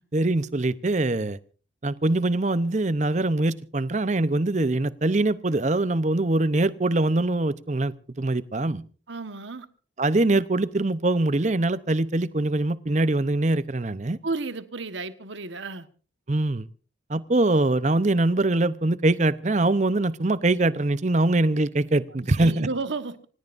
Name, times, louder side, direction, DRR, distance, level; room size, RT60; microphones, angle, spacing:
voice 1, 0.1-1.4 1.8-8.8 10.0-14.2 16.3-16.7 17.1-22.7, right 2 dB, 40° right, 0.7 m, -23 dB
voice 2, 9.1-9.7 14.2-15.9 22.3-23.3, right 3 dB, 80° right, 1.3 m, -32 dB
27.0 x 18.0 x 2.6 m
head